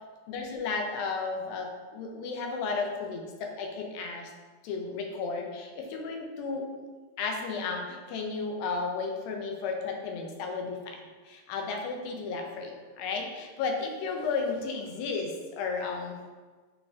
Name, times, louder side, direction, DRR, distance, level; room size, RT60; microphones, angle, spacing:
voice 1, 0.3-4.3 4.6-6.8 7.2-11.0 11.3-16.2, left 4 dB, 80° left, 2 dB, 2.3 m, -33 dB
6.7 x 2.6 x 2.4 m, 1.4 s
omnidirectional pair, 4.2 m